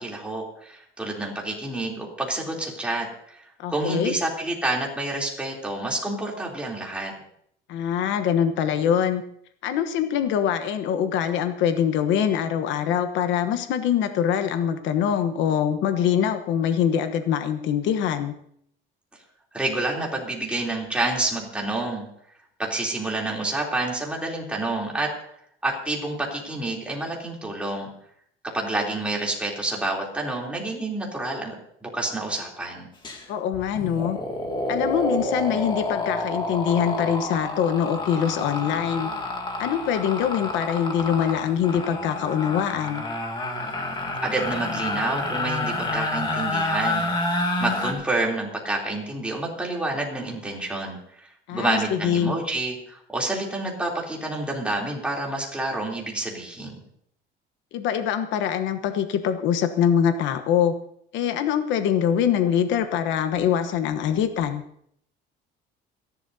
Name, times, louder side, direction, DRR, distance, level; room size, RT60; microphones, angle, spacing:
voice 1, 0.0-7.1 19.5-22.1 22.6-25.1 25.6-27.9 28.5-31.5 31.8-32.9 44.2-47.3 47.6-56.8, right 2 dB, 5° right, -2 dB, 3.3 m, -28 dB
voice 2, 3.6-4.1 7.7-9.2 9.6-18.3 33.3-34.2 34.7-39.1 39.6-43.0 51.5-52.3 57.7-60.7 61.1-64.6, left 8 dB, 70° left, 8 dB, 1.2 m, -24 dB
sound 1, 33.0-33.2 33.5-47.9, left 2 dB, 25° left, 2.3 m, -29 dB
29.0 x 11.5 x 2.8 m, 0.69 s
cardioid pair, 150°, 20 cm